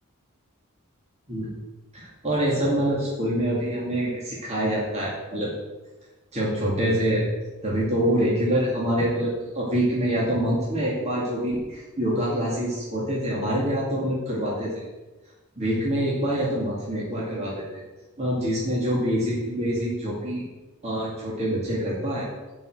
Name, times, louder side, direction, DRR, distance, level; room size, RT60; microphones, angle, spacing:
voice 1, 1.9-5.5 6.3-7.3 7.6-14.8 15.6-17.8 18.2-20.4 20.8-22.3, equal, 30° right, -6 dB, 2.5 m, -25 dB
11.0 x 5.7 x 7.9 m, 1.2 s
head